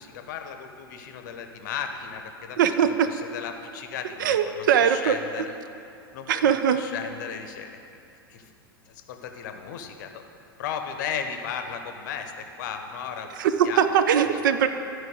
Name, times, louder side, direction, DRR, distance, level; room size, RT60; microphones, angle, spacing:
voice 1, 0.0-5.6 6.1-7.7 8.3-8.5 9.1-10.2 10.6-12.3 12.6-13.3 13.6-13.8 14.3-14.4, left 7 dB, 50° left, 6 dB, 0.7 m, -35 dB
voice 2, 2.6-3.1 4.2-5.1 6.3-6.8 13.4-13.5 13.8-14.7, right 8 dB, 55° right, 9 dB, 0.5 m, -21 dB
12.0 x 4.6 x 4.7 m, 2.6 s
figure-of-eight pair, 90°, 12 cm